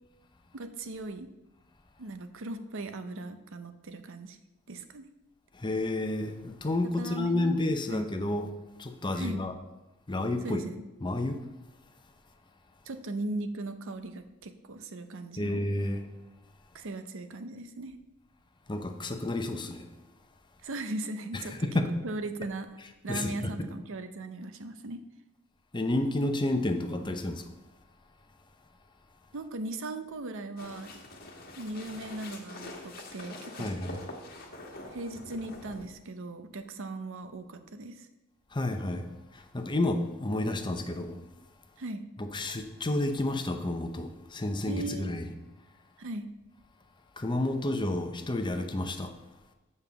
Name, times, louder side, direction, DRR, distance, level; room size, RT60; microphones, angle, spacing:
voice 1, 0.5-1.3 2.0-4.4 4.7-5.1 7.0-8.1 9.2-9.4 10.4-10.8 12.9-15.6 16.7-18.0 20.6-21.6 22.0-22.7 23.0-25.0 29.3-31.0 31.6-33.8 34.9-38.1 41.8-42.1 44.7-45.2 46.0-46.3, right 2 dB, 60° right, 0.7 m, -38 dB
voice 2, 5.6-8.5 8.8-9.5 10.1-10.6 11.0-11.4 15.4-16.0 18.7-19.8 21.3-21.9 23.1-23.7 25.7-27.4 33.6-34.0 38.5-39.1 39.5-41.2 42.2-45.3 47.2-49.1, left 2 dB, 20° left, 0.7 m, -30 dB
sound 1, 30.6-35.9, left 2 dB, 45° left, 1.4 m, -45 dB
7.1 x 5.5 x 6.9 m
head